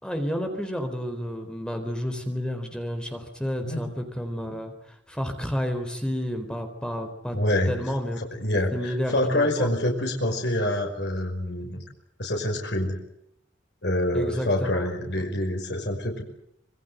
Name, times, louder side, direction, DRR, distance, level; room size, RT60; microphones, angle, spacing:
voice 1, 0.0-7.4 7.7-8.2 8.7-9.7 14.1-14.8, equal, 5° left, 6 dB, 4.0 m, -31 dB
voice 2, 7.3-11.8 12.2-13.0 13.8-16.2, left 1 dB, 65° left, 2 dB, 5.5 m, -26 dB
26.5 x 23.0 x 8.1 m, 0.74 s
head